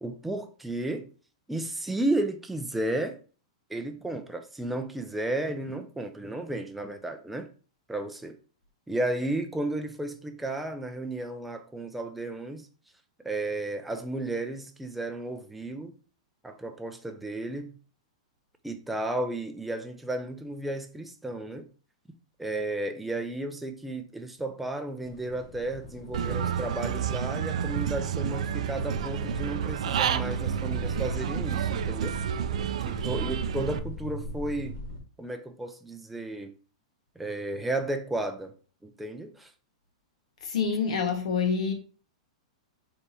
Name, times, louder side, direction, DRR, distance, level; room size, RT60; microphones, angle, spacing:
voice 1, 0.0-1.1 1.5-3.1 3.7-7.5 7.9-8.4 8.9-12.7 13.2-15.9 16.4-17.7 18.6-21.7 22.4-32.2 32.8-34.7 35.2-36.5 37.2-38.5 38.8-39.5, right 2 dB, 5° right, 0.4 m, -33 dB
sound 1, 25.0-35.0, left 1 dB, 50° left, 1.2 m, -40 dB
Human voice / Bird, 26.1-33.8, right 9 dB, 75° right, 0.3 m, -30 dB
voice 2, 40.4-41.7, left 6 dB, 80° left, 1.1 m, -27 dB
3.4 x 2.7 x 4.1 m
supercardioid pair, 155°, 4 cm